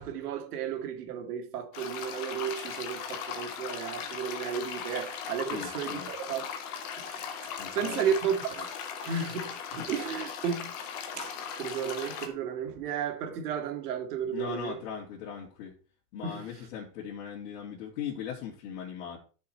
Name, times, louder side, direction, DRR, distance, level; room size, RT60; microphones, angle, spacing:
voice 1, 0.0-6.5 7.0-8.7 9.0-10.7 11.1-14.8 16.2-16.7, right 7 dB, 75° right, 2.2 m, -33 dB
sound 1, 1.7-12.3, left 7 dB, 15° left, 0.3 m, -38 dB
voice 2, 5.5-6.1 7.6-8.1 9.7-9.9 14.3-15.8 16.1-19.2, left 8 dB, 60° left, 2.7 m, -39 dB
11.5 x 5.8 x 4.4 m
supercardioid pair, 165°, 46 cm